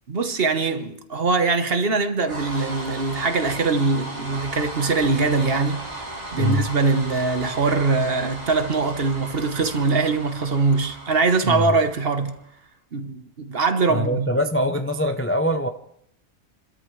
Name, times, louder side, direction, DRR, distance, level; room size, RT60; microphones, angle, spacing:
voice 1, 0.1-5.8 6.3-12.4 12.9-14.3, right 4 dB, 55° right, 1.3 m, -22 dB
sound 1, 2.2-12.5, right 1 dB, 35° right, 2.5 m, -36 dB
voice 2, 13.9-15.7, equal, 15° left, 0.5 m, -23 dB
29.5 x 13.0 x 3.2 m
omnidirectional pair, 1.3 m